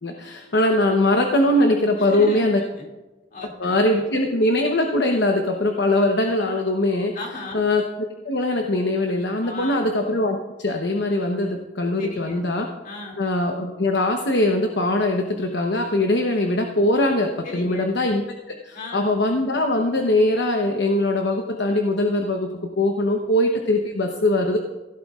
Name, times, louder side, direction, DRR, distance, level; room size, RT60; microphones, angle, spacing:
voice 1, 0.0-2.6 3.6-7.2 7.5-7.8 8.2-12.7 13.2-22.5 22.8-24.6, left 1 dB, 65° left, 2 dB, 0.9 m, -21 dB
voice 2, 2.0-2.5 2.8-2.9 3.3-4.1 7.1-7.7 9.4-9.9 12.0-12.5 12.8-13.3 17.4-17.9 18.7-19.2 23.2-23.3, left 2 dB, 45° left, 0 dB, 2.6 m, -37 dB
16.0 x 12.5 x 2.4 m, 1.1 s
head